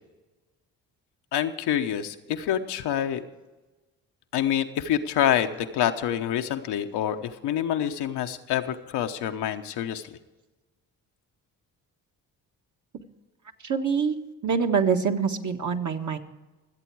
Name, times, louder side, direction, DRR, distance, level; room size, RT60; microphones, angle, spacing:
voice 1, 1.3-3.2 4.3-10.2, left 10 dB, 75° left, 6 dB, 1.1 m, -27 dB
voice 2, 13.6-14.2 14.4-16.2, right 6 dB, 45° right, 4 dB, 1.6 m, -25 dB
24.5 x 8.4 x 4.7 m, 1.2 s
supercardioid pair, 55°, 40 cm